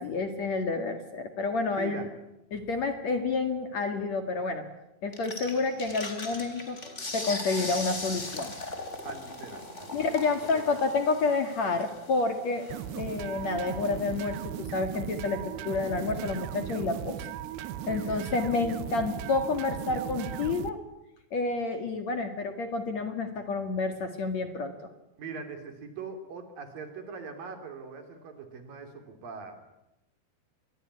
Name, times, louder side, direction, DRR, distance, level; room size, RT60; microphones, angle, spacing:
voice 1, 0.0-2.1 2.5-4.6 5.0-6.8 7.1-8.5 9.9-12.7 12.9-17.2 17.9-20.8 21.3-24.9, left 3 dB, 50° left, 7 dB, 2.8 m, -29 dB
voice 2, 1.7-2.1 9.0-9.9 10.5-10.6 17.9-18.3 25.2-29.7, right 5 dB, 60° right, 6 dB, 4.6 m, -42 dB
sound 1, 5.1-14.4, left 2 dB, 20° left, 3.3 m, -40 dB
sound 2, 12.7-20.7, right 11 dB, 85° right, 3.2 m, -37 dB
25.5 x 22.0 x 9.6 m, 0.90 s
omnidirectional pair, 4.6 m